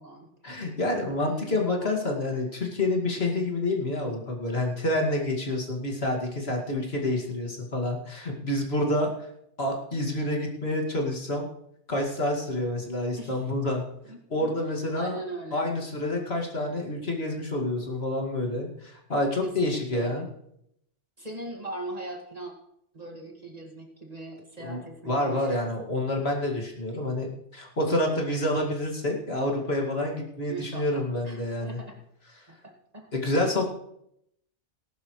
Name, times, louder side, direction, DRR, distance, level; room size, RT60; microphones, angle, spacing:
voice 1, 0.4-9.1 9.6-11.5 11.9-13.8 14.3-15.2 15.5-20.3 24.6-24.8 25.0-31.8 33.1-33.7, left 1 dB, 60° left, 0 dB, 2.5 m, -28 dB
voice 2, 1.2-1.6 13.2-13.4 14.1-14.5 14.9-15.7 19.4-20.2 21.2-22.5 22.9-25.6 30.5-32.0 32.5-33.1, right 2 dB, 35° right, 1 dB, 2.2 m, -40 dB
19.0 x 11.0 x 3.2 m, 0.75 s
omnidirectional pair, 1.2 m